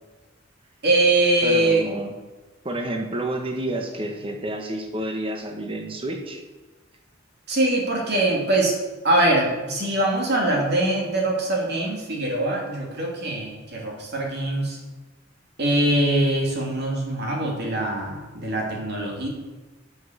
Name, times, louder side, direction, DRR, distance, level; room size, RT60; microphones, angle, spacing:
voice 1, 0.8-1.9 7.5-8.7 9.0-14.8 15.6-19.3, right 1 dB, 60° right, -1 dB, 2.7 m, -22 dB
voice 2, 1.4-2.1 2.6-6.4, right 1 dB, 30° right, 3 dB, 1.3 m, -29 dB
10.5 x 7.4 x 6.9 m, 1.2 s
head